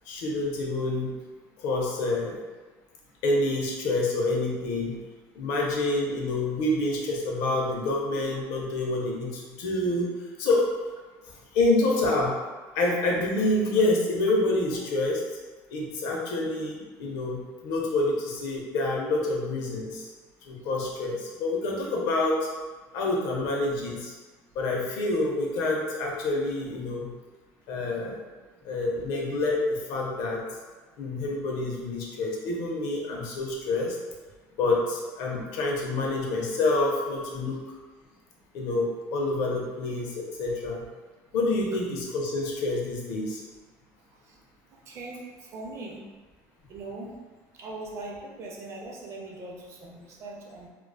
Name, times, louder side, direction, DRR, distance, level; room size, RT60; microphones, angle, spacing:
voice 1, 0.1-1.2 1.6-2.4 3.2-5.0 5.3-10.1 10.4-10.6 11.5-12.3 12.7-15.2 15.7-20.1 20.5-22.4 22.9-24.1 24.5-27.1 27.7-28.2 28.6-30.4 31.0-34.0 34.6-37.6 38.5-40.9 41.3-43.4, left 2 dB, 75° left, -1 dB, 0.6 m, -27 dB
voice 2, 44.9-46.0 46.7-47.1 47.6-50.7, right 2 dB, 45° right, -1 dB, 0.5 m, -40 dB
2.5 x 2.2 x 2.2 m, 1.3 s
cardioid pair, 140°, 6 cm